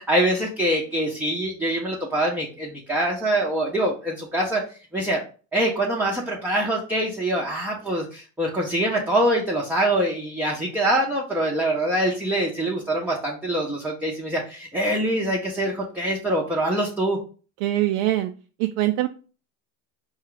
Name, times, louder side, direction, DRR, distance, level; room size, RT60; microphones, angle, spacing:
voice 1, 0.0-4.6 4.9-5.2 5.5-17.2, right 1 dB, 5° right, -2 dB, 0.6 m, -24 dB
voice 2, 17.6-18.3 18.6-19.1, right 15 dB, 65° right, 6 dB, 0.5 m, -22 dB
4.4 x 2.3 x 3.8 m, 0.37 s
supercardioid pair, 100°, 47 cm